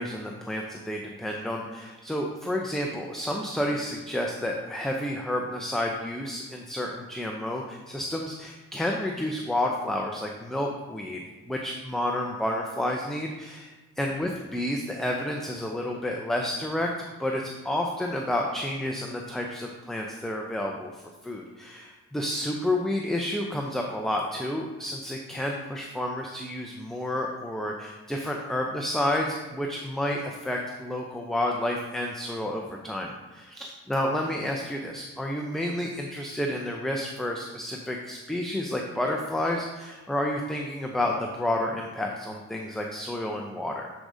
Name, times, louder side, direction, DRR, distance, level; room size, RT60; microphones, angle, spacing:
voice 1, 0.0-11.2 11.5-16.9 17.2-43.9, left 1 dB, ahead, 1 dB, 0.6 m, -30 dB
9.8 x 4.9 x 2.7 m, 1.2 s
cardioid pair, 90°, 30 cm